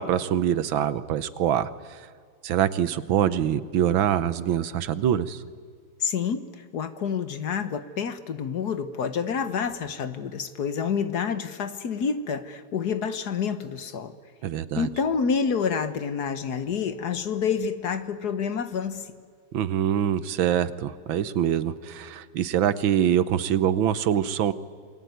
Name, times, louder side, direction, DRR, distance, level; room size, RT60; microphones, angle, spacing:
voice 1, 0.0-2.0 2.4-5.4 14.4-14.9 19.5-24.5, right 10 dB, 80° right, 15 dB, 1.7 m, -24 dB
voice 2, 6.0-14.1 14.8-19.1, left 6 dB, 55° left, 11 dB, 1.6 m, -28 dB
28.0 x 22.5 x 9.4 m, 2.1 s
omnidirectional pair, 2.2 m